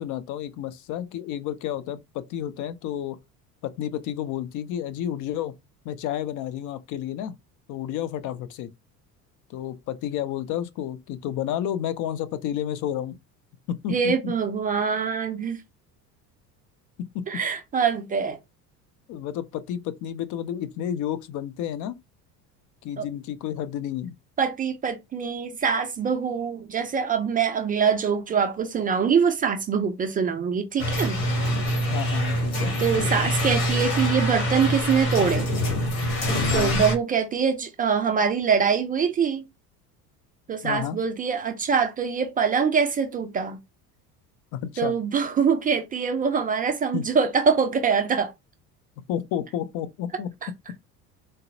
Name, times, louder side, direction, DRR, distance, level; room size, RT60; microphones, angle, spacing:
voice 1, 0.0-3.2 3.6-5.5 5.8-7.3 7.7-8.7 9.5-13.1 13.7-14.3 17.1-17.3 19.1-22.0 22.8-24.1 31.9-32.7 36.3-36.8 40.6-41.0 44.5-44.9 46.9-47.1 49.1-50.3, left 10 dB, 40° left, 0.5 m, -31 dB
voice 2, 13.9-15.6 17.3-18.4 23.0-23.1 24.4-31.2 32.8-35.5 36.0-36.1 36.5-39.5 40.5-43.6 44.8-48.3 50.4-50.5, right 6 dB, 20° right, 0.4 m, -24 dB
sound 1, 30.8-37.0, equal, 70° left, 1.3 m, -25 dB
3.8 x 2.1 x 2.6 m
figure-of-eight pair, 65°, 47 cm